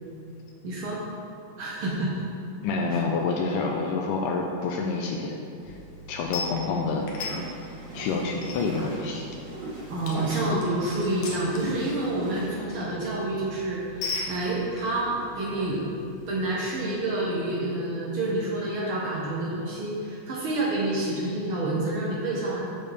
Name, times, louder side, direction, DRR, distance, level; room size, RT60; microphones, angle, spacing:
voice 1, 0.6-1.0 1.6-2.1 2.8-3.0 9.9-15.8 16.3-22.6, right 2 dB, 80° right, -5 dB, 1.1 m, -28 dB
voice 2, 2.6-5.4 5.7-5.8 6.1-7.1 7.9-9.2, left 4 dB, 85° left, 0 dB, 2.2 m, -28 dB
sound 1, 5.6-16.4, left 2 dB, 70° left, 2.1 m, -40 dB
sound 2, 6.8-12.6, right 1 dB, 45° right, 2.2 m, -39 dB
8.7 x 6.8 x 3.3 m, 2.8 s
omnidirectional pair, 3.7 m